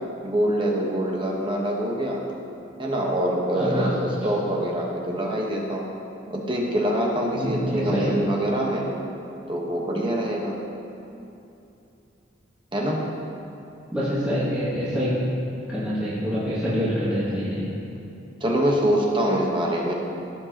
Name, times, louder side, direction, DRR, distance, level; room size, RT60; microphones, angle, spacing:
voice 1, 0.2-2.2 2.8-5.8 6.3-8.9 9.5-10.6 12.7-13.0 18.4-19.9, right 1 dB, 25° right, -1 dB, 1.2 m, -24 dB
voice 2, 3.5-3.9 4.3-4.4 7.3-8.1 13.9-15.1 15.7-17.6, equal, 5° right, -13 dB, 2.1 m, -26 dB
17.5 x 7.5 x 2.9 m, 2.8 s
head